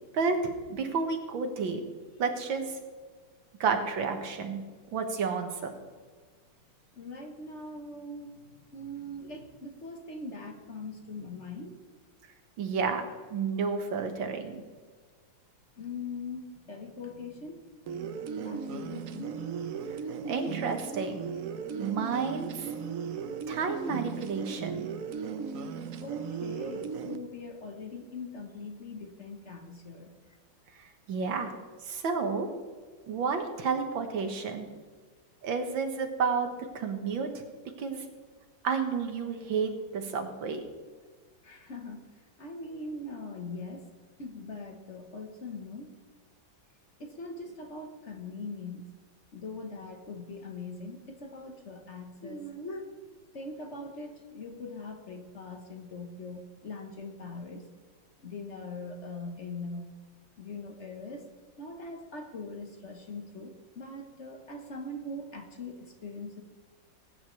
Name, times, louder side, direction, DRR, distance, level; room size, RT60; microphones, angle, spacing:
voice 1, 0.1-1.8 2.2-2.7 3.6-4.6 4.9-5.7 12.6-13.0 13.3-14.6 20.3-21.2 21.8-22.7 23.5-24.9 31.1-31.5 31.9-32.5 33.1-34.7 35.4-36.5 36.8-37.4 37.8-38.0 38.6-40.6, right 5 dB, 90° right, 5 dB, 2.1 m, -31 dB
voice 2, 7.0-11.7 15.8-17.7 18.4-19.5 23.0-23.2 26.0-30.1 41.4-42.0 42.4-43.9 44.2-46.0 47.0-48.9 49.3-52.9 53.3-57.6 58.2-59.9 60.4-61.3 61.6-66.4, left 2 dB, 45° left, 4 dB, 1.2 m, -41 dB
sound 1, 17.9-27.2, right 6 dB, 60° right, 0.9 m, -37 dB
20.0 x 9.5 x 3.2 m, 1.5 s
omnidirectional pair, 2.1 m